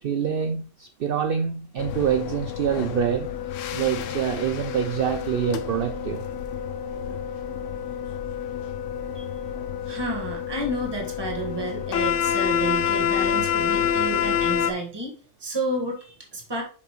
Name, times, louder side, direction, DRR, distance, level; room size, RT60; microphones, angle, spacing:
voice 1, 0.0-3.3 3.7-6.2, right 8 dB, 65° right, 0.6 m, -26 dB
sound 1, 1.8-14.7, left 8 dB, 75° left, 0.9 m, -28 dB
voice 2, 9.9-16.6, right 2 dB, 20° right, 1.5 m, -31 dB
6.7 x 5.0 x 3.1 m
omnidirectional pair, 1.4 m